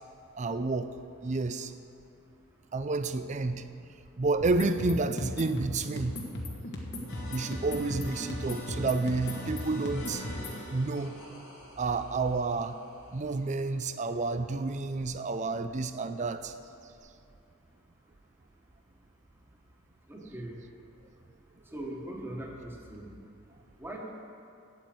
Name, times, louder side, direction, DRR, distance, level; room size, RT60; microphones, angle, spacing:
voice 1, 0.3-0.9 1.2-1.7 2.7-3.6 4.2-6.2 7.3-10.2 10.7-11.1 11.8-12.8 13.1-16.5, right 3 dB, 35° right, 10 dB, 0.5 m, -30 dB
sound 1, 4.4-10.6, left 1 dB, 55° left, 1.5 m, -37 dB
sound 2, 7.1-14.3, left 1 dB, 90° left, 3.2 m, -45 dB
voice 2, 20.1-20.6 21.7-23.1 23.8-24.0, right 1 dB, 10° right, -1 dB, 1.4 m, -40 dB
8.6 x 8.5 x 7.8 m, 2.5 s
head